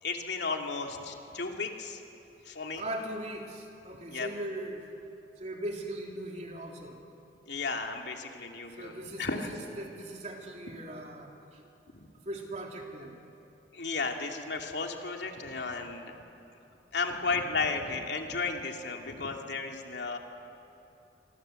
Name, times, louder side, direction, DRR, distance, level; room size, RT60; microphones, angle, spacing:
voice 1, 0.0-2.0 2.4-2.8 4.1-4.3 7.5-8.9 9.2-9.6 11.9-12.1 13.7-16.2 16.9-20.2, left 4 dB, 75° left, 2 dB, 2.6 m, -34 dB
voice 2, 2.8-4.9 5.4-7.0 8.7-11.6 12.2-13.2, right 1 dB, 40° right, 1 dB, 3.3 m, -39 dB
28.5 x 23.5 x 7.8 m, 2.9 s
head